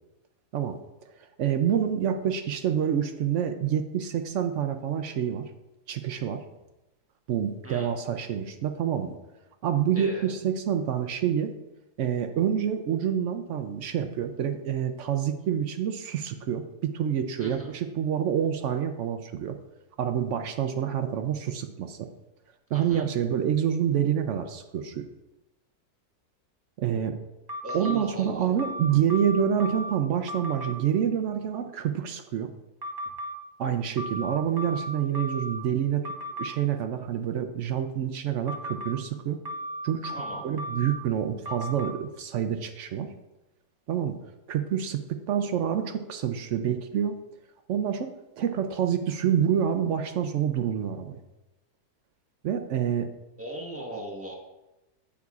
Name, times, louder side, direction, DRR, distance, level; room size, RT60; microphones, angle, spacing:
voice 1, 1.2-5.4 5.9-6.4 7.3-9.2 9.6-11.5 12.0-16.6 16.9-19.6 20.0-22.1 22.7-25.1 26.8-27.2 27.7-32.5 33.6-36.1 36.4-39.4 39.8-40.2 40.4-43.1 43.9-44.2 44.5-45.0 45.3-47.2 47.7-48.1 48.4-51.2 52.4-53.1, right 9 dB, 70° right, 7 dB, 0.7 m, -27 dB
voice 2, 9.9-10.3 17.4-17.7 22.7-23.1 27.6-28.5 40.1-40.4 53.4-54.3, right 1 dB, 10° right, -3 dB, 1.1 m, -38 dB
sound 1, 27.5-28.0 28.6-29.9 30.3-30.7 32.8-33.4 34.0-35.6 36.0-36.5 38.5-38.9 39.5-41.0 41.5-41.9, equal, 40° right, 0.3 m, -35 dB
8.4 x 8.3 x 2.4 m, 1.0 s
omnidirectional pair, 1.7 m